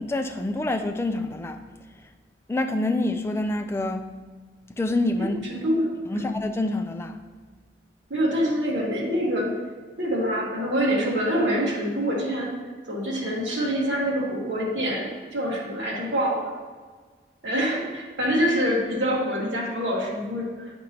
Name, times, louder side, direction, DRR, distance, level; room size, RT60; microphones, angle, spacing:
voice 1, 0.0-1.6 2.5-4.1 4.7-5.4 6.1-7.2, left 2 dB, 15° left, 6 dB, 0.3 m, -27 dB
voice 2, 5.6-6.4 8.1-9.5 10.0-12.5 12.9-16.5 17.4-20.8, equal, 75° right, -5 dB, 1.4 m, -25 dB
8.7 x 5.2 x 2.8 m, 1.5 s
head